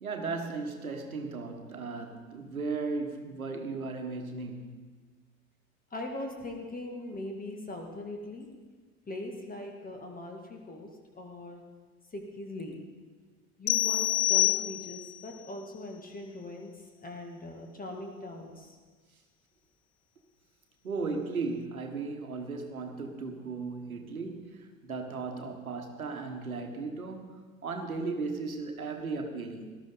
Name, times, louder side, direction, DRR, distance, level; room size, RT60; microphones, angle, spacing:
voice 1, 0.0-4.9 20.8-29.7, right 4 dB, 80° right, 5 dB, 1.3 m, -36 dB
voice 2, 5.9-8.5 9.1-10.9 11.1-11.6 12.1-12.8 13.6-16.7 17.0-18.8, left 1 dB, 20° left, 2 dB, 2.2 m, -40 dB
sound 1, 13.7-15.2, left 17 dB, 40° left, 0.5 m, -26 dB
18.5 x 12.0 x 3.9 m, 1.4 s
figure-of-eight pair, 65°, 42 cm